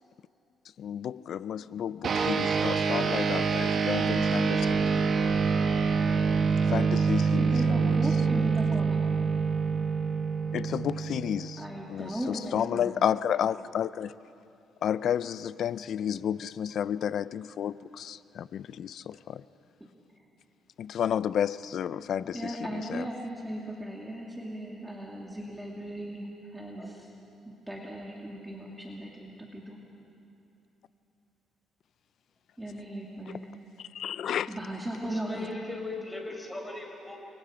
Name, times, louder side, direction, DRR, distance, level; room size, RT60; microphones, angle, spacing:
voice 1, 0.8-4.8 6.7-7.9 10.5-11.6 11.9-14.1 14.8-19.4 20.8-22.4 22.9-23.0 34.0-34.5, left 9 dB, 65° left, 17 dB, 0.5 m, -31 dB
sound 1, 2.0-11.8, right 5 dB, 50° right, 1.4 m, -26 dB
voice 2, 7.3-9.2 11.4-13.1 22.3-26.3 26.5-27.1 27.4-29.8 32.6-33.4 34.5-35.5, right 1 dB, 10° right, -2 dB, 2.4 m, -37 dB
voice 3, 26.8-27.1 35.0-37.2, left 3 dB, 10° left, 1 dB, 4.9 m, -40 dB
29.5 x 24.0 x 5.1 m, 2.7 s
cardioid pair, 105°, 0 cm